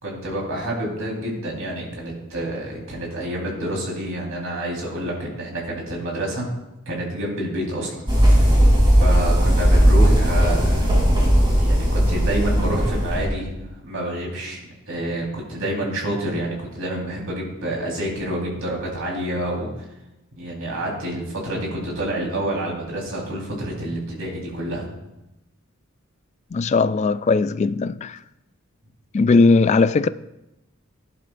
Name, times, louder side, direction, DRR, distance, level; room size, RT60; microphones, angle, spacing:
voice 1, 0.0-6.5 6.9-8.0 8.8-10.9 11.6-13.6 13.8-19.8 20.4-24.8, right 1 dB, 80° right, 4.1 m, -28 dB
sound 1, 8.1-13.3, equal, 25° right, 3.2 m, -17 dB
voice 2, 26.5-28.2 29.1-30.1, left 4 dB, 35° left, 0.3 m, -18 dB
16.5 x 11.0 x 2.5 m
head